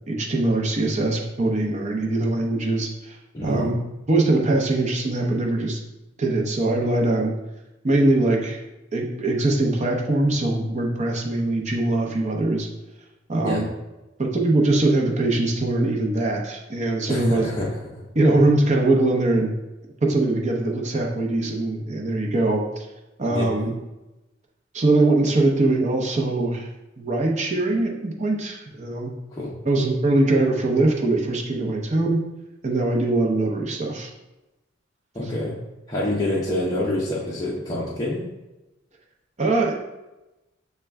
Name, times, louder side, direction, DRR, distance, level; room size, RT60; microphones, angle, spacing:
voice 1, 0.1-3.8 4.1-5.8 6.2-7.3 7.8-8.6 8.9-12.7 13.3-13.7 14.2-17.5 18.1-19.6 20.0-22.9 23.2-23.7 24.7-26.7 27.0-29.1 29.6-32.2 32.6-34.1 39.4-39.8, right 2 dB, 35° right, 0 dB, 0.7 m, -22 dB
voice 2, 3.3-3.7 13.4-13.6 17.1-18.0 23.3-23.7 29.4-29.5 35.1-35.5 35.9-38.3, left 1 dB, 20° left, -6 dB, 0.6 m, -27 dB
6.2 x 2.2 x 3.4 m, 1.0 s
head